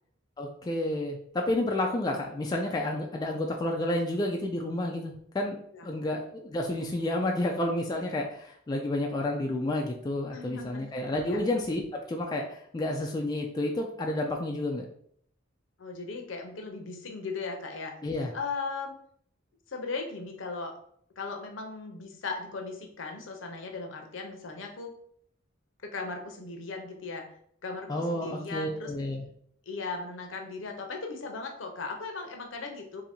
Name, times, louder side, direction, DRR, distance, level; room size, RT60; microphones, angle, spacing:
voice 1, 0.4-14.8 18.0-18.3 27.9-29.2, left 1 dB, 20° left, 0 dB, 0.3 m, -30 dB
voice 2, 10.3-10.9 11.2-11.5 15.8-17.9 18.3-18.9 19.7-20.8 21.2-24.9 25.8-27.3 27.6-28.9 29.7-33.0, left 4 dB, 65° left, 3 dB, 0.7 m, -37 dB
2.7 x 2.6 x 4.2 m, 0.65 s
head